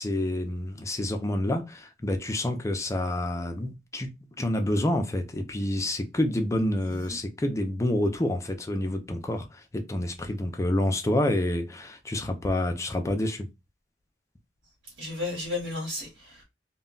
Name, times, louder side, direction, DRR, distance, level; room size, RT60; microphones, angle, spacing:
voice 1, 0.0-4.1 4.4-13.5, left 1 dB, 15° left, 0.4 m, -28 dB
voice 2, 15.0-16.4, left 2 dB, 85° right, 1.2 m, -33 dB
2.2 x 2.1 x 3.7 m
head